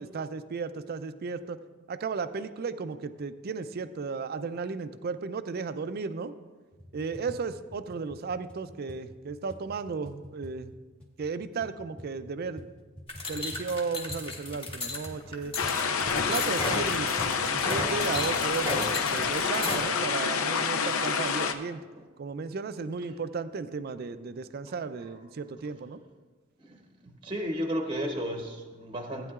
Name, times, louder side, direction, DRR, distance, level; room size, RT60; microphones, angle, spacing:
voice 1, 0.0-1.6 1.9-6.3 6.9-10.7 11.2-12.7 13.3-15.5 16.1-21.8 22.2-26.0, right 4 dB, 50° right, 12 dB, 0.4 m, -35 dB
sound 1, 6.7-18.4, equal, 5° left, 1.1 m, -47 dB
sound 2, 13.1-19.8, left 2 dB, 25° left, 1.2 m, -35 dB
sound 3, 15.6-21.5, left 6 dB, 80° left, 0.6 m, -28 dB
voice 2, 26.6-29.3, equal, 25° right, 4 dB, 0.8 m, -33 dB
15.0 x 9.1 x 2.4 m, 1.3 s
head